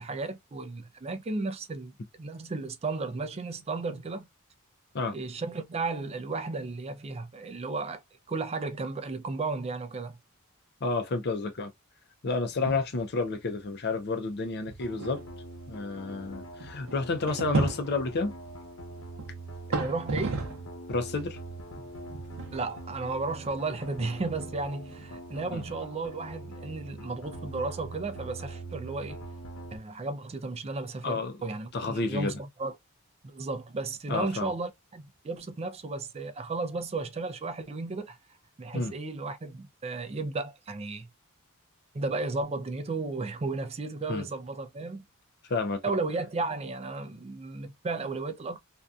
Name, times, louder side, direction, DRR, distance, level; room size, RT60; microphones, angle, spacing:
voice 1, 0.0-1.9 2.2-4.3 5.1-8.0 8.3-10.2 19.8-20.4 22.5-29.2 29.7-32.7 33.2-38.2 38.6-41.1 41.9-45.0 45.8-48.6, right 3 dB, 30° right, 0.4 m, -34 dB
voice 2, 10.8-11.7 12.2-15.2 15.7-18.3 20.9-21.4 25.5-25.6 31.0-31.4 31.7-32.3 34.1-34.5 38.7-38.9 44.1-44.3 45.5-45.9, left 3 dB, 50° left, 0.5 m, -30 dB
sound 1, 12.5-13.0 13.3-13.4 14.1-14.2 14.7-20.8 21.1-25.4, right 2 dB, 65° right, 0.7 m, -35 dB
sound 2, 14.8-29.8, right 2 dB, 75° left, 0.8 m, -43 dB
2.6 x 2.3 x 2.3 m
head